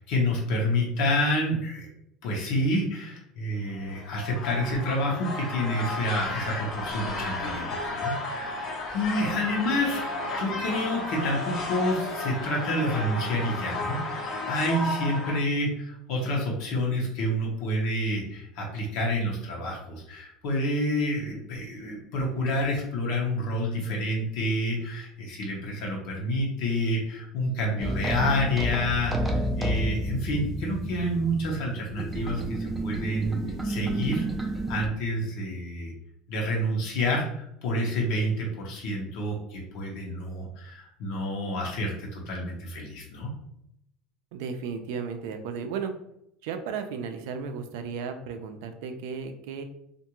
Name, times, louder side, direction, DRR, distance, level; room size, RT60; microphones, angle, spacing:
voice 1, 0.0-1.9 2.2-10.0 10.4-33.4 33.6-35.9 36.3-43.3, left 1 dB, 65° left, -2 dB, 0.8 m, -28 dB
sound 1, 3.8-15.4, left 2 dB, 40° left, 0.6 m, -33 dB
sound 2, 27.8-34.9, right 1 dB, 5° right, 0.3 m, -30 dB
voice 2, 44.3-45.9 46.4-49.6, right 6 dB, 80° right, 7 dB, 0.4 m, -34 dB
2.5 x 2.3 x 2.9 m, 0.75 s
cardioid pair, 150°, 0 cm